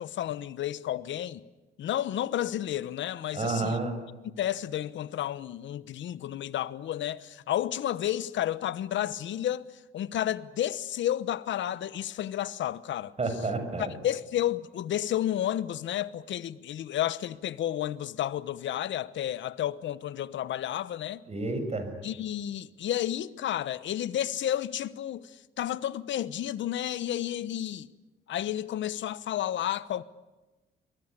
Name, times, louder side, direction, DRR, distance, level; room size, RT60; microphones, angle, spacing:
voice 1, 0.0-1.4 1.8-3.8 4.4-13.1 13.8-21.2 22.0-27.9 28.3-30.0, left 11 dB, 70° left, 1.1 m, -31 dB
voice 2, 3.3-3.9 13.2-13.9 21.3-21.9, right 3 dB, 30° right, 6.7 m, -30 dB
23.0 x 21.0 x 9.9 m
cardioid pair, 90°, 20 cm